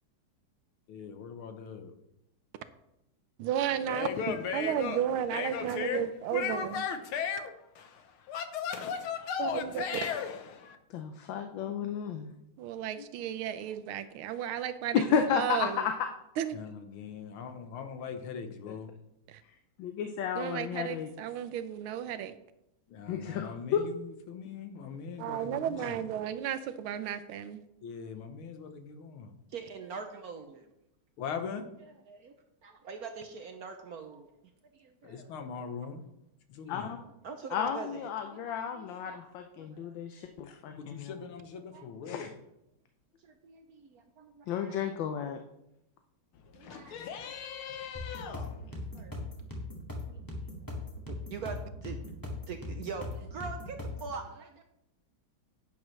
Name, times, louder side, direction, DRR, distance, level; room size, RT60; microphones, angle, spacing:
voice 1, 0.9-1.9 3.9-5.0 5.3-6.0 6.3-10.8 16.5-18.9 22.9-26.0 27.8-29.3 31.2-31.7 35.0-36.0 36.5-36.9 40.5-42.3 46.3-48.6, left 6 dB, 90° left, 7 dB, 1.9 m, -38 dB
voice 2, 3.4-6.8 9.4-9.8 12.6-15.0 15.3-15.9 16.4-16.6 19.3-19.4 20.3-22.3 25.2-27.6, right 10 dB, 85° right, 11 dB, 1.6 m, -33 dB
voice 3, 10.9-12.3 14.9-15.7 19.8-21.1 23.1-23.8 36.7-37.0 37.5-41.1 42.1-42.3 44.5-45.4, left 7 dB, 70° left, 6 dB, 1.4 m, -32 dB
voice 4, 29.5-30.7 31.8-32.3 32.6-34.3 34.7-35.3 35.8-35.9 37.2-39.9 41.7-41.9 43.2-44.9 46.5-47.0 48.3-48.4 48.9-49.1 50.1-50.5 51.1-52.1 52.5-54.6, right 5 dB, 65° right, 6 dB, 0.9 m, -44 dB
sound 1, 47.9-54.1, left 2 dB, 10° left, 1.9 m, -39 dB
10.5 x 9.1 x 3.2 m, 0.84 s
omnidirectional pair, 2.3 m